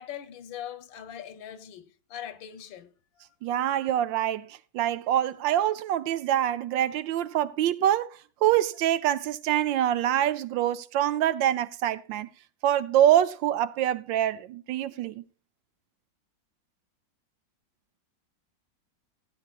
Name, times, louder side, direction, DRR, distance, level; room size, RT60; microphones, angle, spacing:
voice 1, 0.0-2.9, left 10 dB, 85° left, 1.6 m, -41 dB
voice 2, 3.4-8.1 8.4-12.3 12.6-15.2, right 11 dB, 80° right, 1.4 m, -25 dB
16.0 x 9.6 x 2.4 m
omnidirectional pair, 2.0 m